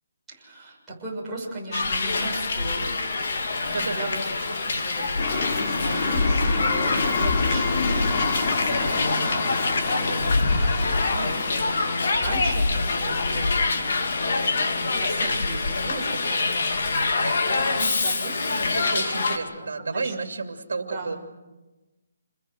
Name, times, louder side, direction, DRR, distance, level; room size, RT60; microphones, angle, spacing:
voice 1, 0.3-10.9 11.2-11.3 11.6-18.7 19.8-20.1 20.9-21.2, right 1 dB, 5° right, -8 dB, 6.8 m, -36 dB
Hiss, 1.7-19.4, left 3 dB, 55° left, 3.0 m, -25 dB
voice 2, 3.6-4.2 10.9-11.4 18.7-21.2, right 4 dB, 75° right, 5 dB, 2.7 m, -32 dB
sound 1, 5.2-15.7, left 4 dB, 30° left, 2.9 m, -30 dB
28.0 x 21.5 x 6.5 m, 1.1 s
hypercardioid pair, 170°, 0 cm